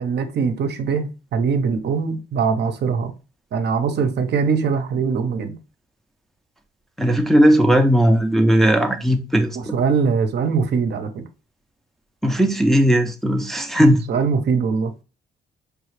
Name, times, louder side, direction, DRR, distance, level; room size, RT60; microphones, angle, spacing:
voice 1, 0.0-3.1 3.5-5.6 9.6-11.2 13.8-14.9, right 5 dB, 60° right, 0.7 m, -22 dB
voice 2, 7.0-9.6 12.2-14.0, equal, ahead, 0.6 m, -17 dB
4.9 x 2.4 x 3.2 m
cardioid pair, 90°, 20 cm